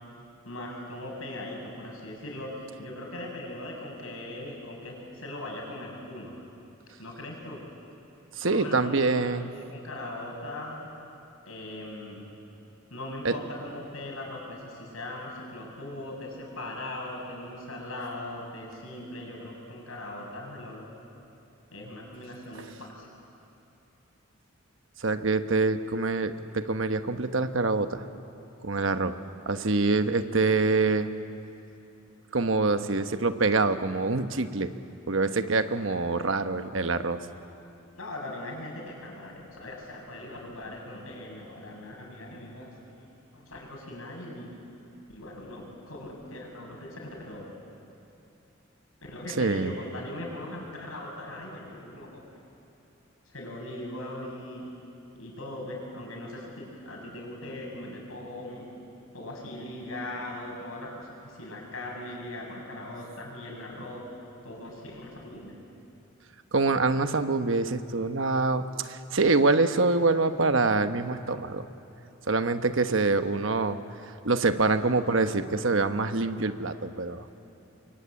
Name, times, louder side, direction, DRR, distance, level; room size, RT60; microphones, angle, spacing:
voice 1, 0.4-6.4 7.0-7.6 8.4-10.9 11.5-12.3 12.9-20.9 21.7-23.1 30.9-31.1 32.9-33.1 35.9-36.0 36.3-36.8 38.0-43.1 43.3-44.6 45.1-47.5 49.0-52.1 53.3-54.7 55.1-58.7 59.1-64.0 64.4-65.6 73.4-73.6 75.0-75.1 75.5-75.6 76.0-76.3, left 1 dB, 80° left, 0 dB, 7.4 m, -40 dB
voice 2, 8.4-9.5 13.2-13.3 22.6-22.7 25.0-28.1 28.6-29.2 29.5-31.1 32.3-34.7 35.1-37.2 49.4-49.7 66.5-71.7 72.3-73.8 74.2-77.2, right 3 dB, 65° right, 9 dB, 1.1 m, -25 dB
28.5 x 23.5 x 8.8 m, 2.9 s
head